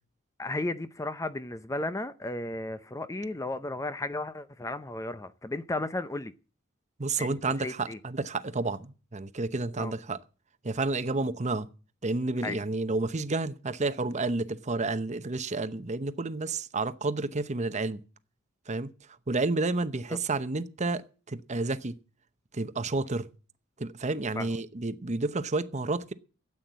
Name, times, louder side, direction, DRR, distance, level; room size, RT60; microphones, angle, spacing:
voice 1, 0.4-6.3 7.2-8.0 9.8-9.9 12.4-12.6 20.1-20.2 24.3-24.6, left 2 dB, 15° left, 0.5 m, -34 dB
voice 2, 7.0-10.2 10.6-11.7 12.0-18.0 18.7-18.9 19.3-22.0 22.5-23.2 23.8-26.1, right 3 dB, 35° right, 0.8 m, -30 dB
13.0 x 8.6 x 7.4 m
head